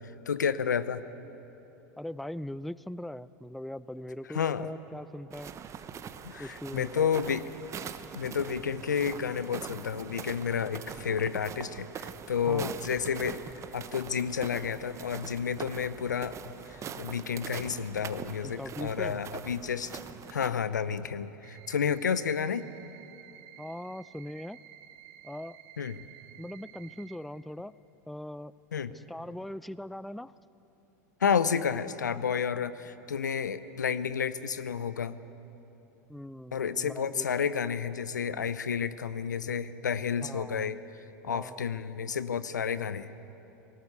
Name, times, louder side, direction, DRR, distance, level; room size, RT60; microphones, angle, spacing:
voice 1, 0.3-1.0 4.3-4.7 6.2-7.4 8.1-13.4 13.7-16.3 16.7-19.9 20.3-22.6 25.8-26.0 28.7-28.9 31.2-35.2 36.5-40.8 41.2-43.1, left 7 dB, 90° left, 15 dB, 0.7 m, -31 dB
voice 2, 2.0-5.5 6.4-7.1 12.5-12.8 18.4-19.2 23.6-24.6 25.2-25.6 26.4-27.7 28.1-28.5 28.9-30.3 36.1-37.3 40.2-40.7 41.3-41.7, left 1 dB, ahead, 18 dB, 0.4 m, -40 dB
sound 1, 5.3-20.5, right 7 dB, 30° right, 1.1 m, -43 dB
sound 2, 21.4-27.2, right 12 dB, 55° right, 1.2 m, -52 dB
19.5 x 18.0 x 8.2 m, 3.0 s
hypercardioid pair, 95°, 9 cm